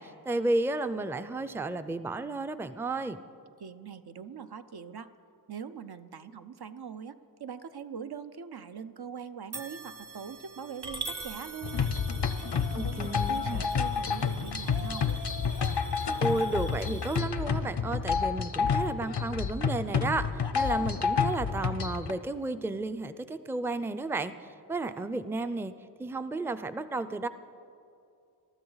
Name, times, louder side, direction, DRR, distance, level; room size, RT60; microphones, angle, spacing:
voice 1, 0.0-3.2 12.7-13.6 16.2-24.3 24.7-25.7 26.0-27.3, right 2 dB, 5° right, 12 dB, 0.4 m, -32 dB
voice 2, 3.6-5.1 5.5-11.9 12.5-15.1, right 7 dB, 70° right, 10 dB, 0.6 m, -42 dB
sound 1, 9.5-18.8 19.3-19.5 20.5-20.6, right 4 dB, 40° right, 1.0 m, -49 dB
Coin (dropping) / Glass, 10.8-17.2, right 3 dB, 90° right, 1.5 m, -45 dB
sound 2, 11.6-22.1, left 6 dB, 85° left, 0.7 m, -29 dB
21.5 x 12.5 x 4.0 m, 2.6 s
wide cardioid pair, 60°, 39 cm